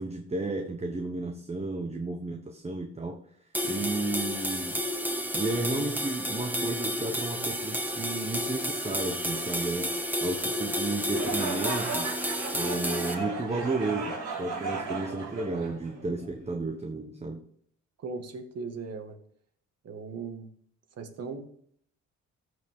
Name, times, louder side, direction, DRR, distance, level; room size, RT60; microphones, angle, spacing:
voice 1, 0.0-3.2 3.6-4.8 5.3-12.1 12.5-17.4, right 2 dB, 20° right, 5 dB, 1.0 m, -33 dB
sound 1, 3.5-13.2, equal, 5° right, 1.4 m, -31 dB
sound 2, 11.1-16.3, right 4 dB, 85° right, 4.4 m, -35 dB
voice 2, 18.0-19.2 19.8-20.5 21.0-21.4, right 4 dB, 55° right, 6 dB, 1.9 m, -38 dB
14.0 x 6.6 x 3.7 m, 0.63 s
cardioid pair, 90°, 30 cm